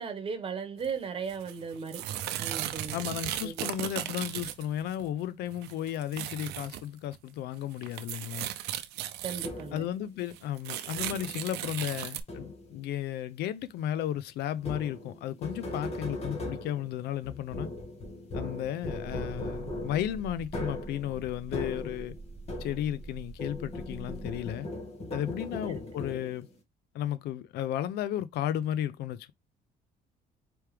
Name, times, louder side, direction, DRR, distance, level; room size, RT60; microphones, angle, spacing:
voice 1, 0.0-2.0 2.4-3.0 3.4-3.7 9.2-9.8 25.0-25.2 25.6-25.7 26.2-26.3, right 5 dB, 30° right, 1.2 m, -37 dB
sound 1, 0.8-0.9 1.3-5.1 5.5-6.8 7.1-7.2 7.5-9.8 10.3-12.2, right 12 dB, 85° right, 0.6 m, -36 dB
voice 2, 2.9-8.5 9.7-17.7 18.3-22.2 22.6-24.7 25.1-26.5 26.9-29.3, left 11 dB, 75° left, 0.5 m, -34 dB
sound 2, 9.4-10.0 11.0-11.4 12.3-12.8 14.6-23.1 23.4-26.5, left 1 dB, 40° left, 1.7 m, -39 dB
sound 3, 18.8-24.5, right 3 dB, 10° right, 0.4 m, -45 dB
4.7 x 3.0 x 3.3 m
cardioid pair, 110°, 17 cm